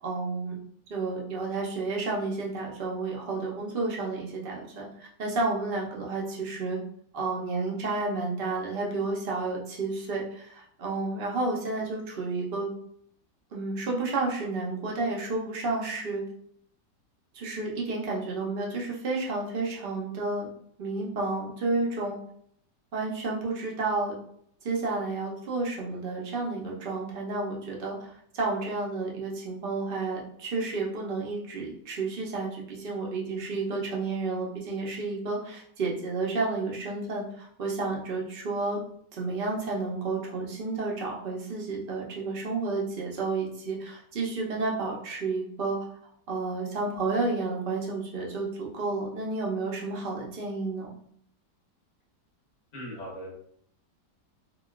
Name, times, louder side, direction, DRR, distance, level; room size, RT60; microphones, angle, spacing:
voice 1, 0.0-0.6 0.9-6.8 7.1-12.7 13.5-16.2 17.3-20.5 20.8-22.2 22.9-24.1 24.6-38.8 39.2-45.8 46.3-50.9, right 3 dB, 50° right, -2 dB, 0.7 m, -31 dB
voice 2, 52.7-53.4, equal, 30° left, -5 dB, 0.8 m, -39 dB
4.0 x 2.3 x 2.3 m, 0.64 s
omnidirectional pair, 1.8 m